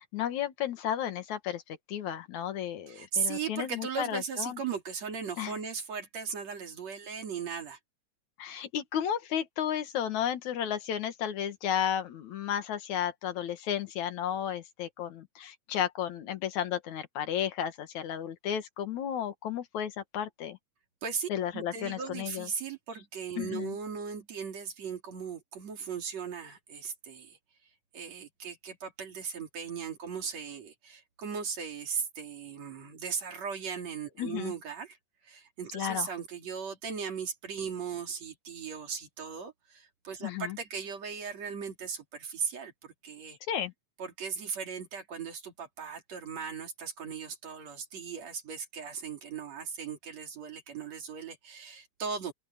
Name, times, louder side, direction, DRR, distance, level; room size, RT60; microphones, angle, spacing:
voice 1, 0.0-1.6 1.9-4.6 5.4-5.5 8.4-20.6 21.3-22.5 23.4-23.7 34.2-34.5 35.7-36.1 40.2-40.6 43.5-43.7, left 9 dB, 80° left, 2.9 m, -33 dB
voice 2, 2.9-7.8 21.0-27.4 27.9-35.0 35.2-43.4 44.0-52.3, right 6 dB, 65° right, 4.1 m, -37 dB
open air
omnidirectional pair, 3.3 m